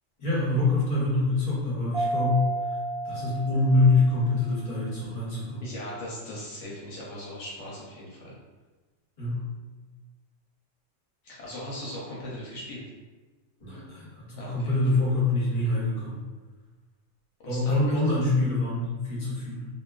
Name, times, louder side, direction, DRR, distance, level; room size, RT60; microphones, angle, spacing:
voice 1, 0.2-2.8 3.0-5.6 9.2-9.4 13.6-16.2 17.4-19.7, left 2 dB, 40° left, -7 dB, 0.7 m, -25 dB
Mallet percussion, 1.9-4.5, right 2 dB, 45° right, 0.4 m, -32 dB
voice 2, 5.6-8.3 11.2-12.8 14.3-14.7 17.4-17.7, left 1 dB, 70° left, -5 dB, 0.8 m, -39 dB
2.6 x 2.2 x 2.2 m, 1.3 s
omnidirectional pair, 1.3 m